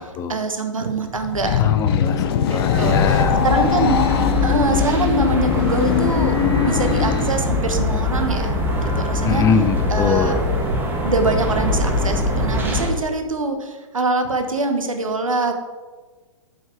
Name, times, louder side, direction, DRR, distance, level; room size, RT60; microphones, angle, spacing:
voice 1, 0.3-1.7 2.5-4.0 4.4-6.4 6.6-8.5 9.0-9.4 9.9-10.4 11.0-15.5, right 3 dB, 85° right, 5 dB, 1.2 m, -24 dB
sound 1, 1.1-7.4, left 9 dB, 50° left, 0.7 m, -21 dB
voice 2, 1.6-3.4 9.2-10.4, left 6 dB, 20° left, 8 dB, 0.6 m, -22 dB
sound 2, 2.7-12.9, left 1 dB, 10° right, 1.6 m, -22 dB
8.0 x 5.5 x 4.8 m, 1.3 s
figure-of-eight pair, 110°, 17 cm